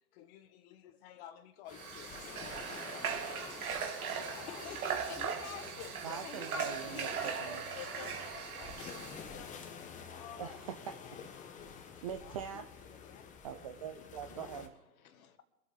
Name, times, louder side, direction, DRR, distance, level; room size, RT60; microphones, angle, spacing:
voice 1, 0.1-2.4 2.7-3.4 4.1-5.1 5.8-6.7 7.0-10.6 11.0-12.6 13.0-13.4, left 10 dB, 40° left, 1.3 m, -53 dB
sound 1, 1.7-14.7, left 6 dB, 15° left, 1.0 m, -49 dB
Water / Water tap faucet, 1.7-9.2, right 6 dB, 60° right, 2.3 m, -39 dB
voice 2, 3.3-3.7 4.5-5.7 6.2-7.4 10.1-10.2 11.5-11.9 14.0-14.1 15.0-15.5, left 9 dB, 60° left, 1.7 m, -49 dB
voice 3, 6.0-7.6 10.4-10.9 12.0-12.7 13.4-14.8, right 8 dB, 25° right, 0.4 m, -43 dB
24.5 x 8.2 x 3.8 m
hypercardioid pair, 120°, 48 cm